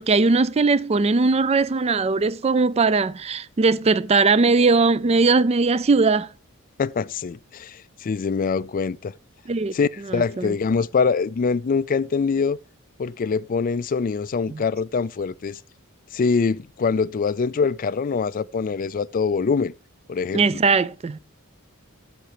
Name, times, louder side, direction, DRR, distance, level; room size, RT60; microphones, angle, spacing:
voice 1, 0.0-6.3 9.5-9.7 10.1-10.5 14.5-14.6 20.3-21.2, right 4 dB, 30° right, 0.4 m, -19 dB
voice 2, 6.8-9.1 9.7-12.6 13.0-15.6 16.1-19.7 20.1-20.6, left 5 dB, 40° left, 0.4 m, -24 dB
15.0 x 6.7 x 3.0 m
head